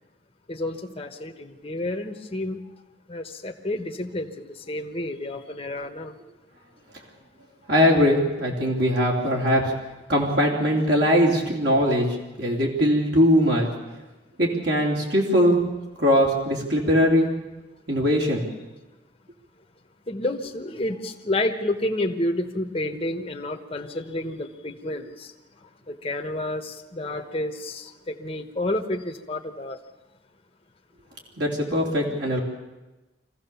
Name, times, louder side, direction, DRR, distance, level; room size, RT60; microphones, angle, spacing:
voice 1, 0.5-2.6 3.1-6.1 20.1-29.8, left 1 dB, 35° left, 3 dB, 1.2 m, -30 dB
voice 2, 7.7-9.7 10.1-12.1 12.4-13.7 14.4-15.6 16.0-17.3 17.9-18.4 31.4-32.4, equal, 65° right, -2 dB, 3.7 m, -21 dB
25.5 x 15.5 x 7.1 m, 1.1 s
head